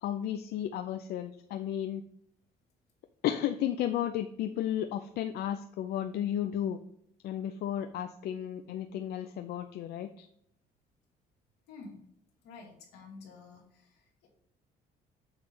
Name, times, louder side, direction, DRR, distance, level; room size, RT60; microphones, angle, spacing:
voice 1, 0.0-2.0 3.2-6.8 7.2-10.3, left 11 dB, 70° left, 9 dB, 0.5 m, -33 dB
voice 2, 11.7-12.0 12.4-14.3, left 3 dB, 85° left, -1 dB, 2.4 m, -50 dB
8.1 x 3.2 x 5.2 m, 0.70 s
cardioid pair, 110°, 17 cm